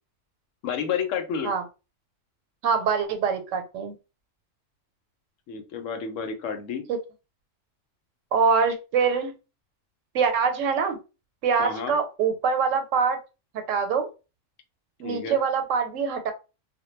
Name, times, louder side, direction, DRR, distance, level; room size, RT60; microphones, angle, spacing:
voice 1, 0.6-1.5 5.5-6.9 11.6-12.0 15.0-15.4, left 6 dB, 80° left, 7 dB, 0.9 m, -30 dB
voice 2, 2.6-3.9 6.9-7.0 8.3-9.3 10.1-11.0 11.4-13.2 13.5-14.1 15.0-16.3, right 6 dB, 85° right, 7 dB, 1.0 m, -24 dB
2.1 x 2.1 x 3.0 m, 0.30 s
omnidirectional pair, 1.3 m